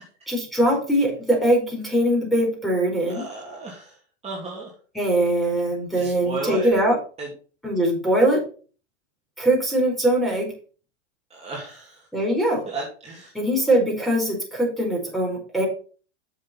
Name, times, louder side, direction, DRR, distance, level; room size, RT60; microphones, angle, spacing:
voice 1, 0.3-3.2 4.9-7.0 7.6-8.4 9.4-10.5 12.1-12.6 13.3-15.6, right 1 dB, ahead, -1 dB, 4.4 m, -21 dB
voice 2, 3.1-3.9 4.2-4.7 5.9-6.7 7.2-7.3 11.3-12.0 12.7-13.3, right 3 dB, 15° right, -3 dB, 2.7 m, -33 dB
7.2 x 7.0 x 5.5 m, 0.39 s
supercardioid pair, 135°, 36 cm